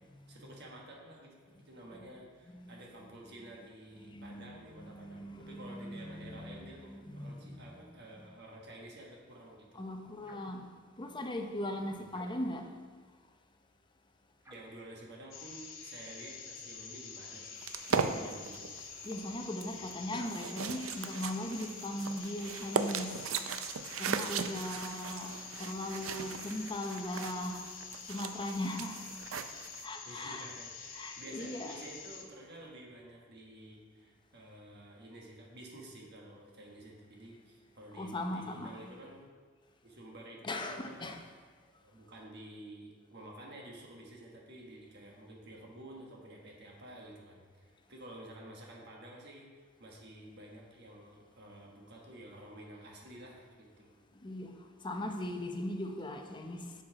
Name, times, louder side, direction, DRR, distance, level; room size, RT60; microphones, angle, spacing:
voice 1, 0.3-1.4 1.6-9.8 11.9-12.1 14.5-17.6 18.1-18.6 19.7-19.9 30.0-39.2 39.8-41.1 41.8-54.0 55.0-55.1, right 1 dB, 55° right, 1.4 m, -51 dB
voice 2, 4.1-4.5 4.7-7.6 9.8-10.6 11.0-12.7 17.9-18.3 19.0-23.2 24.0-27.6 28.1-29.1 29.8-30.5 30.9-31.8 38.0-38.7 40.4-41.2 54.2-54.5 54.8-56.7, left 1 dB, 25° left, 0.7 m, -39 dB
sound 1, 10.2-10.6 12.1-12.7 14.4-14.8, right 1 dB, 15° right, 1.0 m, -57 dB
sound 2, 15.3-32.2, left 5 dB, 70° left, 1.0 m, -47 dB
sound 3, 17.6-29.8, right 6 dB, 85° right, 0.5 m, -38 dB
7.4 x 5.6 x 4.8 m
head